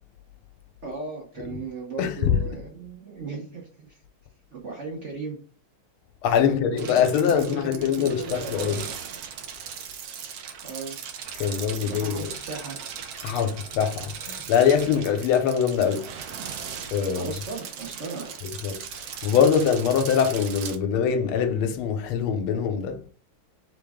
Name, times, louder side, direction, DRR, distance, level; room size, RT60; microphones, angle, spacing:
voice 1, 0.8-4.0 4.5-5.4 6.4-8.7 9.9-10.0 10.6-11.0 11.7-12.8 17.1-18.3, right 3 dB, 45° right, 1.0 m, -36 dB
voice 2, 2.0-2.4 6.2-8.8 11.4-12.3 13.2-16.1 16.9-17.3 18.6-23.0, left 7 dB, 80° left, 1.5 m, -23 dB
sound 1, 6.8-20.8, right 7 dB, 80° right, 0.8 m, -38 dB
3.8 x 3.6 x 3.5 m
omnidirectional pair, 2.3 m